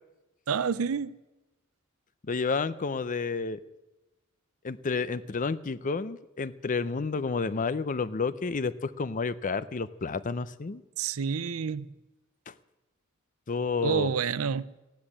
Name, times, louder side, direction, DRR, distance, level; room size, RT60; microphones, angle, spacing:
voice 1, 0.5-1.2 11.0-11.9 13.8-14.7, right 6 dB, 75° right, 0.5 m, -28 dB
voice 2, 2.2-3.6 4.6-10.8 12.5-12.6 13.5-14.1, left 4 dB, 40° left, 0.5 m, -30 dB
15.5 x 10.5 x 8.6 m
head